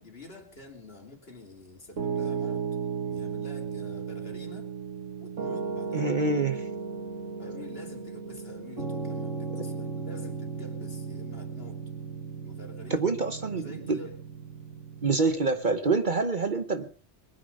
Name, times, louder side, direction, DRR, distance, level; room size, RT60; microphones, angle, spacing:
voice 1, 0.0-2.8 3.1-4.7 5.2-6.1 7.4-11.8 12.4-14.2, left 2 dB, 50° left, 3 dB, 3.0 m, -47 dB
Piano, 2.0-15.3, right 5 dB, 90° right, 2.7 m, -35 dB
voice 2, 5.9-6.7 12.9-14.1 15.0-17.0, right 3 dB, 40° right, 9 dB, 1.1 m, -26 dB
21.5 x 9.9 x 5.4 m, 0.42 s
omnidirectional pair, 1.3 m